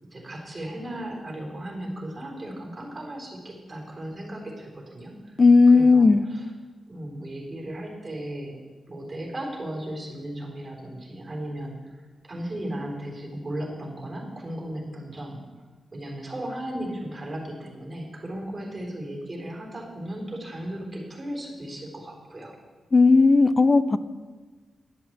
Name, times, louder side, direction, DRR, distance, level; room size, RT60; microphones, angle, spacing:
voice 1, 0.0-5.4 5.7-6.5 6.9-8.6 8.9-15.4 15.9-22.5, right 1 dB, 25° right, -1 dB, 3.6 m, -36 dB
voice 2, 5.4-6.2 22.9-24.0, left 3 dB, 30° left, 14 dB, 0.5 m, -15 dB
11.0 x 7.8 x 8.0 m, 1.4 s
wide cardioid pair, 135°, 0 cm